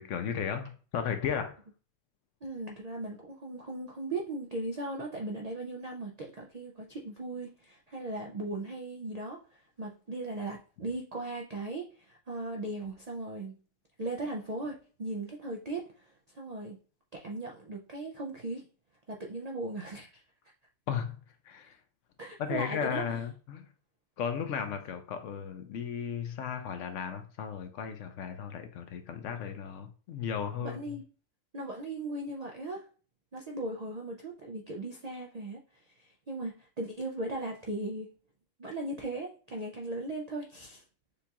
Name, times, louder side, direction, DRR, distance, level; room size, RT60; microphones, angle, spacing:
voice 1, 0.0-1.5 20.9-21.2 21.5-21.8 22.4-23.6 24.2-30.8, left 7 dB, 70° left, 0.9 m, -35 dB
voice 2, 2.4-13.5 14.0-16.8 17.1-18.7 19.1-20.2 22.2-23.0 30.6-31.1 31.5-32.8 33.3-38.1 38.6-40.8, right 2 dB, 85° right, 0.3 m, -38 dB
6.7 x 2.3 x 2.8 m
omnidirectional pair, 1.4 m